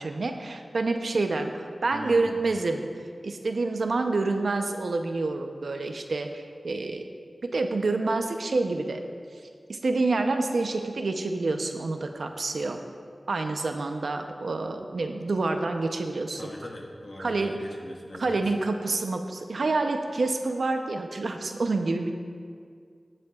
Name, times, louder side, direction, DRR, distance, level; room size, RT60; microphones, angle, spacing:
voice 1, 0.0-2.9 3.2-7.0 7.4-9.0 9.7-12.8 13.3-16.4 17.2-17.5 18.2-22.1, right 3 dB, 85° right, 5 dB, 0.6 m, -28 dB
voice 2, 1.9-2.4 16.3-18.4, left 1 dB, 65° left, -1 dB, 1.4 m, -41 dB
16.0 x 7.7 x 2.4 m, 2.2 s
wide cardioid pair, 70°, 0 cm